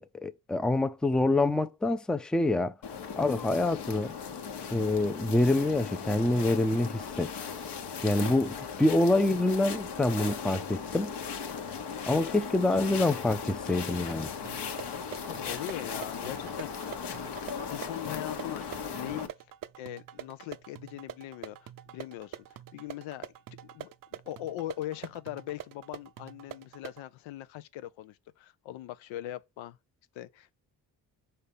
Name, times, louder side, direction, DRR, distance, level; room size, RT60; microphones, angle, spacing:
voice 1, 0.0-2.8 3.2-4.1 4.7-7.5 8.0-11.1 12.1-14.3, left 2 dB, ahead, 0.4 m, -26 dB
sound 1, 2.8-19.3, left 6 dB, 60° left, 1.1 m, -38 dB
sound 2, 14.5-27.0, right 11 dB, 45° right, 0.5 m, -46 dB
voice 2, 15.3-17.3 17.5-19.3 19.8-22.4 22.7-23.3 23.6-29.8 30.1-30.6, left 14 dB, 80° left, 0.6 m, -40 dB
5.5 x 3.3 x 5.6 m
supercardioid pair, 45°, 46 cm